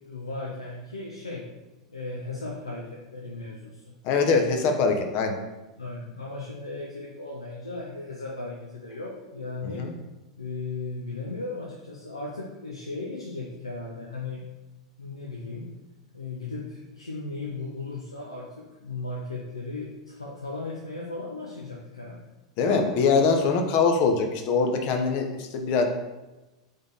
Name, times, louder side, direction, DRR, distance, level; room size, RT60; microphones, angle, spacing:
voice 1, 0.0-1.5 1.9-3.9 5.8-9.9 10.4-14.4 15.0-15.7 16.1-22.2, left 3 dB, 85° left, -2 dB, 0.6 m, -36 dB
voice 2, 4.0-5.4 9.6-9.9 22.6-25.8, left 4 dB, 45° left, 4 dB, 0.7 m, -23 dB
3.6 x 3.5 x 3.9 m, 1.1 s
figure-of-eight pair, 90°, 3 cm